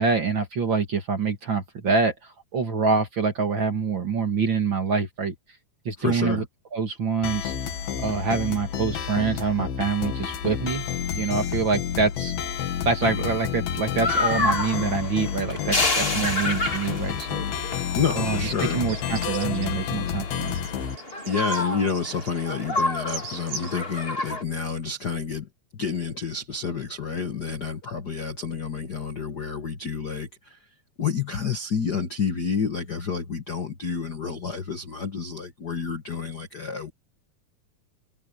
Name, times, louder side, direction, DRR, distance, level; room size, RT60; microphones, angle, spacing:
voice 1, 0.0-5.3 5.9-6.4 6.7-7.5 8.0-10.8 11.2-12.3 12.9-17.8 18.1-20.6, right 5 dB, 40° right, 2.2 m, -26 dB
voice 2, 6.0-6.5 17.9-18.8 21.3-30.7 31.0-36.9, left 6 dB, 60° left, 1.0 m, -29 dB
sound 1, 7.2-21.0, left 8 dB, 85° left, 3.9 m, -30 dB
sound 2, 14.0-24.4, left 2 dB, 20° left, 2.2 m, -29 dB
sound 3, 18.9-19.7 20.0-20.1 20.5-23.8, right 5 dB, 85° right, 8.2 m, -39 dB
omnidirectional pair, 4.2 m